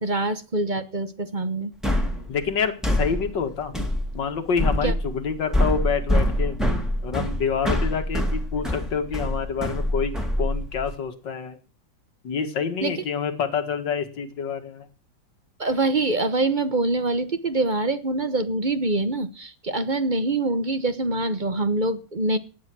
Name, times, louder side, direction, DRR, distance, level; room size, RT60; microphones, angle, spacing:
voice 1, 0.0-1.7 4.8-4.9 12.8-13.0 15.6-22.4, right 2 dB, 30° right, 11 dB, 1.0 m, -25 dB
sound 1, 1.8-11.0, equal, ahead, 2.6 m, -25 dB
voice 2, 2.3-3.7 4.1-6.6 7.0-10.1 10.4-11.6 12.2-14.9, left 6 dB, 70° left, 7 dB, 2.5 m, -27 dB
17.0 x 10.5 x 6.2 m, 0.37 s
omnidirectional pair, 2.0 m